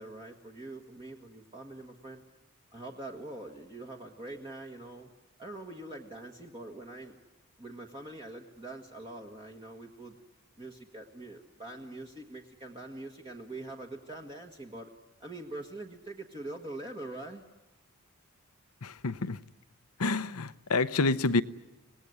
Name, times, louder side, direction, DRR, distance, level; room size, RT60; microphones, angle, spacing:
voice 1, 0.0-2.2 2.7-5.1 5.4-7.2 7.6-10.2 10.6-14.9 15.2-17.4, right 2 dB, 20° right, 1.5 m, -44 dB
voice 2, 18.8-19.4 20.0-21.4, left 3 dB, 80° left, 0.8 m, -28 dB
25.5 x 19.5 x 9.5 m
head